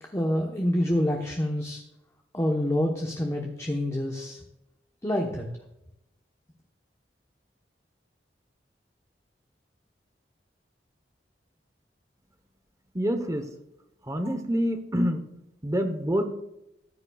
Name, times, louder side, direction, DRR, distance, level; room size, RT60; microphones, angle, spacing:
voice 1, 0.0-1.8 2.3-4.4 5.0-5.4, left 1 dB, 20° left, 0 dB, 1.1 m, -27 dB
voice 2, 12.9-13.5 14.1-15.2 15.6-16.3, equal, 20° right, 8 dB, 1.0 m, -26 dB
14.5 x 9.7 x 2.4 m, 0.85 s
head